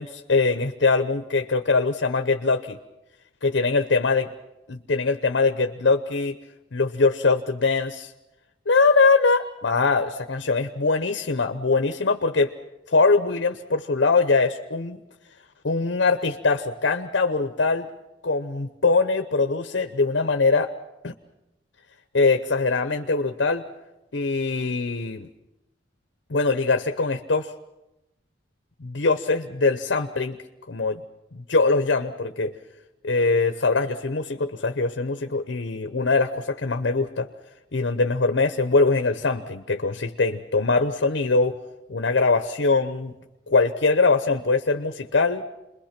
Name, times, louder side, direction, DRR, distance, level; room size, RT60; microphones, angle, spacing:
voice 1, 0.0-2.8 3.4-4.3 4.7-6.4 6.7-8.1 8.7-12.5 12.9-15.0 15.6-17.9 18.2-20.7 21.0-21.1 22.1-23.6 24.1-25.3 26.3-27.5 28.8-30.4 30.7-31.0 31.3-32.6 33.0-37.3 37.7-41.6 41.9-43.1 43.5-45.4, left 3 dB, 75° left, 8 dB, 0.9 m, -22 dB
28.0 x 22.0 x 5.9 m, 0.96 s
head